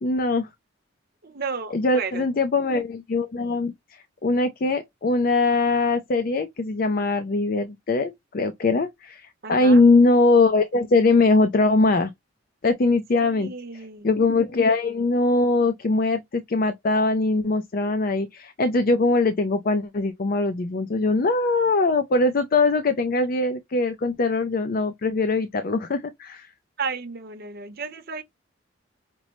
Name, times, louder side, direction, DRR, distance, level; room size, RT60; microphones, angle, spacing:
voice 1, 0.0-0.5 1.7-3.7 4.2-12.1 12.6-13.5 14.0-26.5, left 3 dB, 45° left, 0.4 m, -21 dB
voice 2, 1.2-2.2 9.4-9.8 13.2-14.1 26.8-28.2, right 5 dB, 50° right, 0.7 m, -33 dB
5.2 x 2.0 x 3.0 m
head